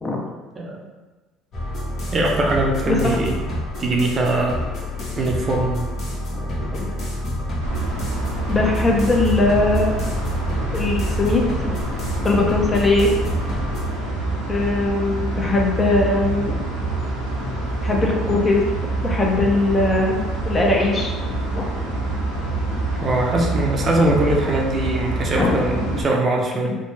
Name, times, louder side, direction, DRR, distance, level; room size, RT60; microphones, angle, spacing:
sound 1, 1.5-13.8, left 1 dB, 50° left, 1.0 m, -28 dB
voice 1, 2.1-3.3 3.8-4.6 5.2-5.8 23.0-26.8, right 2 dB, 40° right, 0 dB, 0.5 m, -21 dB
voice 2, 6.3-6.9 8.5-9.9 10.7-13.1 14.5-16.7 17.8-21.1 21.5-21.7 25.4-26.0, left 2 dB, 25° left, 0 dB, 0.6 m, -21 dB
sound 2, 7.6-26.0, right 2 dB, 85° right, 0.8 m, -26 dB
2.9 x 2.1 x 3.2 m, 1.2 s
hypercardioid pair, 60°, 0 cm